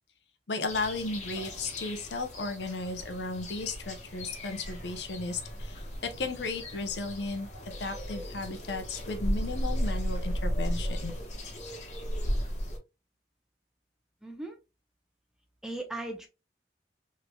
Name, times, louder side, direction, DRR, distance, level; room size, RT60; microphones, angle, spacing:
voice 1, 0.5-5.8 6.2-7.5 7.8-11.1, left 3 dB, 75° left, 0.7 m, -35 dB
sound 1, 0.6-12.8, equal, 45° left, 1.1 m, -35 dB
voice 2, 14.2-14.6 15.6-16.3, right 2 dB, 5° right, 0.7 m, -37 dB
3.8 x 3.2 x 2.2 m
head